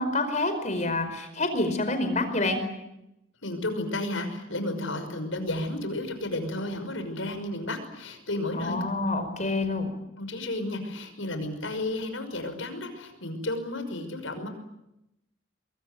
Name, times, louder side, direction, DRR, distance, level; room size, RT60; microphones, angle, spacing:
voice 1, 0.0-2.6 8.5-9.9, left 2 dB, 35° left, 8 dB, 4.9 m, -27 dB
voice 2, 3.4-8.8 10.2-14.5, left 1 dB, 75° left, 8 dB, 6.0 m, -32 dB
24.5 x 23.0 x 9.4 m, 0.86 s
head